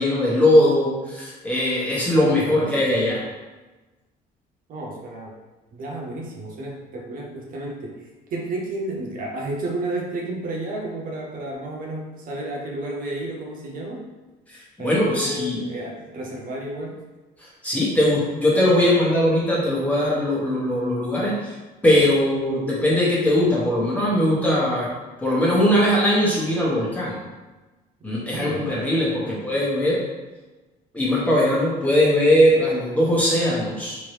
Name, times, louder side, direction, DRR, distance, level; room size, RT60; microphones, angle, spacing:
voice 1, 0.0-3.2 14.8-15.6 17.6-21.5 21.8-24.9 25.2-27.2 28.0-30.0 30.9-34.0, left 1 dB, 10° left, -6 dB, 1.3 m, -20 dB
voice 2, 2.3-3.1 4.7-5.4 5.7-14.1 14.8-17.0 28.0-28.7 29.0-29.4, right 2 dB, 55° right, -1 dB, 0.7 m, -32 dB
3.6 x 3.1 x 3.2 m, 1.2 s
cardioid pair, 110°, 17 cm